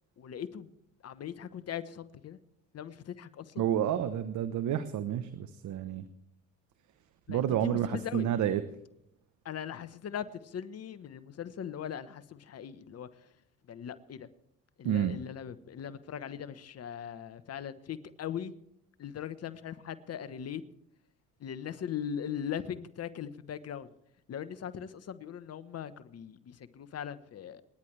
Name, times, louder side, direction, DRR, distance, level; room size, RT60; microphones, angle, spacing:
voice 1, 0.2-0.7 1.0-2.4 2.7-3.6 7.3-8.3 9.4-13.1 13.7-14.3 14.8-18.5 19.0-20.6 21.4-23.9 24.3-27.6, left 8 dB, 45° left, 13 dB, 1.2 m, -40 dB
voice 2, 3.6-6.0 7.3-8.6 14.8-15.1, right 10 dB, 60° right, 11 dB, 1.1 m, -30 dB
27.0 x 10.5 x 3.4 m, 0.80 s
supercardioid pair, 75°, 34 cm